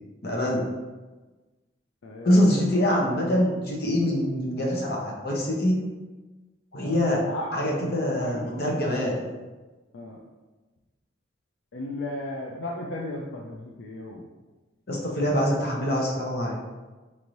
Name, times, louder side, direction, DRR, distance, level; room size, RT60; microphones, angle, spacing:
voice 1, 0.2-0.7 2.2-5.8 6.7-7.2 7.5-9.2 14.9-16.6, equal, 55° left, -2 dB, 0.8 m, -24 dB
voice 2, 2.0-2.7 6.8-7.0 7.2-7.9 8.2-8.9 9.9-10.2 11.7-14.3, left 1 dB, 75° left, -1 dB, 0.4 m, -36 dB
4.4 x 3.1 x 2.6 m, 1.2 s
head